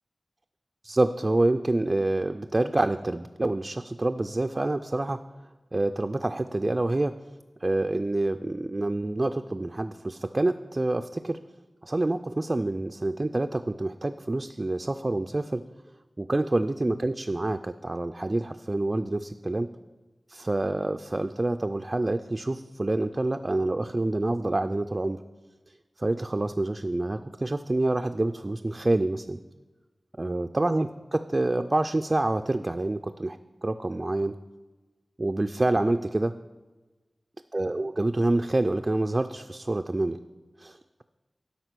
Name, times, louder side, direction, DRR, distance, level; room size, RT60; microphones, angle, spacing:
voice 1, 0.8-5.2 5.7-7.1 7.6-11.4 11.8-15.6 16.2-19.7 20.3-25.2 26.0-29.4 30.2-34.3 35.2-36.3 37.5-40.2 40.6-40.8, right 2 dB, 35° right, 7 dB, 0.3 m, -27 dB
12.5 x 5.2 x 6.0 m, 1.2 s
wide cardioid pair, 90°, 0 cm